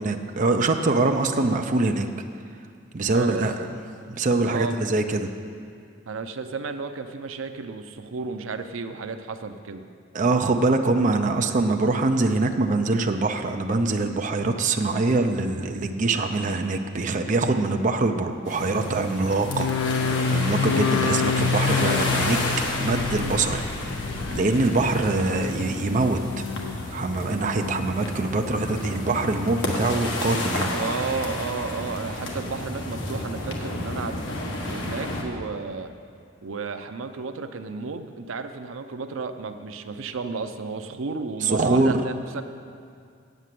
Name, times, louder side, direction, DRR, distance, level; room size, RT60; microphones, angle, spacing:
voice 1, 0.0-2.1 2.9-3.7 4.1-5.3 10.1-19.7 20.3-22.4 22.8-23.6 24.3-26.4 26.9-30.7 41.4-42.0, right 3 dB, 40° right, 5 dB, 0.5 m, -23 dB
voice 2, 3.1-3.5 4.4-4.8 6.1-9.9 30.7-35.9 36.4-42.4, right 4 dB, 85° right, 9 dB, 0.5 m, -33 dB
sound 1, 18.4-35.2, left 1 dB, 65° left, 1.5 m, -31 dB
sound 2, 19.4-24.8 25.1-25.7 26.2-26.8 27.3-27.9 28.4-29.0 29.5-30.1 30.6-30.7, left 6 dB, 85° left, 0.3 m, -29 dB
8.4 x 8.0 x 7.5 m, 2.3 s
head